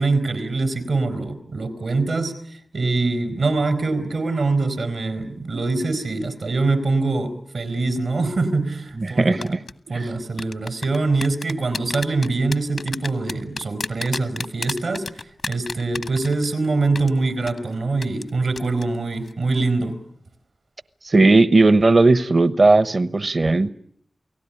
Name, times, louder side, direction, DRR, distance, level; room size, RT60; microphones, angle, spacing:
voice 1, 0.0-9.5 9.9-20.0, right 3 dB, 90° right, 7 dB, 4.2 m, -24 dB
voice 2, 9.0-9.4 9.9-10.0 21.0-23.7, right 3 dB, 60° right, 15 dB, 1.0 m, -16 dB
sound 1, 9.4-9.7 10.4-16.6 16.9-17.1 17.5-17.6 18.0-18.3 18.6-18.8 19.1-19.3, left 3 dB, 70° left, 1.1 m, -30 dB
29.0 x 18.0 x 9.9 m, 0.68 s
cardioid pair, 45°, 0 cm